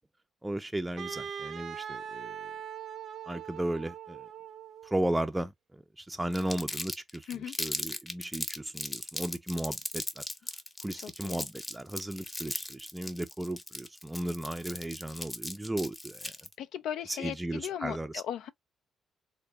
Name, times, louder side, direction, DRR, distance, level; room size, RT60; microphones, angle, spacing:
voice 1, 0.4-2.4 3.3-4.2 4.8-10.2 10.8-16.3 17.1-18.2, right 1 dB, 10° right, 0.4 m, -35 dB
Wind instrument woodwind instrument, 1.0-5.0, right 8 dB, 55° right, 0.6 m, -41 dB
Crumpling crinkling, 6.3-16.5, left 1 dB, 15° left, 0.8 m, -38 dB
voice 2, 11.0-11.5 16.6-18.5, left 10 dB, 80° left, 0.3 m, -37 dB
3.6 x 2.1 x 3.2 m
cardioid pair, 90°, 0 cm